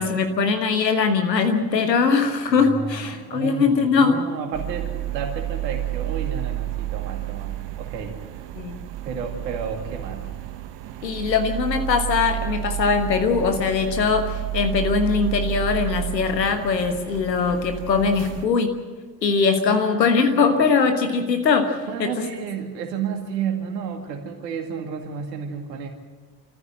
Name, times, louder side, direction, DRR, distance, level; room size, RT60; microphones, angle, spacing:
voice 1, 0.0-4.2 8.5-8.8 11.0-18.8 19.2-22.3, left 5 dB, 85° left, 7 dB, 1.5 m, -21 dB
voice 2, 2.7-7.5 7.8-8.2 9.0-10.2 19.7-20.5 21.9-25.9, right 6 dB, 75° right, 4 dB, 2.3 m, -31 dB
sound 1, 4.5-18.5, right 15 dB, 60° right, 1.4 m, -31 dB
25.5 x 14.5 x 7.7 m, 1.3 s
figure-of-eight pair, 40°, 49 cm